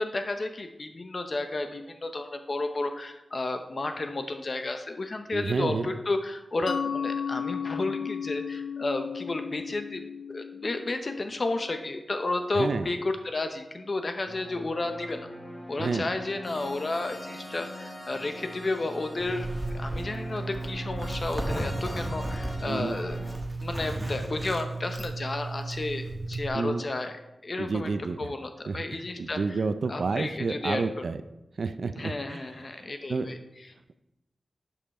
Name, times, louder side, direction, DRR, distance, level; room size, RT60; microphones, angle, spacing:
voice 1, 0.0-15.3 15.7-19.5 19.7-23.2 23.6-27.1 27.4-27.9 28.2-29.4 29.9-30.8 31.9-33.4, left 2 dB, 40° left, 7 dB, 0.7 m, -32 dB
voice 2, 5.3-5.9 12.5-12.9 15.8-16.1 22.7-23.0 26.5-26.8 27.6-28.3 28.7-31.2 31.6-32.4 32.7-33.4, right 4 dB, 65° right, 11 dB, 0.4 m, -30 dB
Mallet percussion, 6.7-12.0, left 7 dB, 85° left, 0.4 m, -35 dB
sound 1, 14.3-23.4, left 1 dB, 25° left, 1.6 m, -42 dB
Zipper (clothing), 19.2-26.5, right 2 dB, 15° right, 1.3 m, -34 dB
11.5 x 5.6 x 4.2 m, 0.93 s
wide cardioid pair, 130°, 0 cm